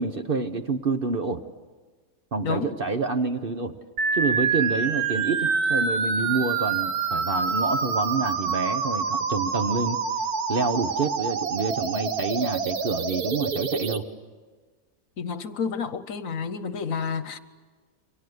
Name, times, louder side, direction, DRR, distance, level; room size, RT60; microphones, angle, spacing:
voice 1, 0.0-1.4 2.3-3.8 4.1-10.0 10.5-14.1, right 4 dB, 40° right, 8 dB, 1.1 m, -27 dB
sound 1, 4.0-14.0, right 5 dB, 80° right, 1.7 m, -26 dB
voice 2, 15.2-17.4, left 6 dB, 65° left, 13 dB, 1.4 m, -30 dB
29.0 x 24.0 x 8.0 m, 1.4 s
omnidirectional pair, 1.6 m